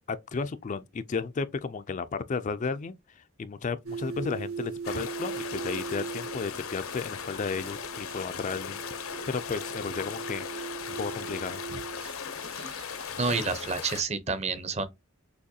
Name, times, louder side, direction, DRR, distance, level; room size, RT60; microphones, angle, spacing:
voice 1, 0.1-8.8 9.3-11.8, left 4 dB, 35° left, 0.4 m, -34 dB
sound 1, 3.9-13.1, right 5 dB, 80° right, 2.5 m, -40 dB
sound 2, 4.8-14.0, left 7 dB, 75° left, 0.7 m, -38 dB
voice 2, 13.2-14.9, right 4 dB, 30° right, 0.7 m, -29 dB
6.4 x 3.0 x 2.7 m
head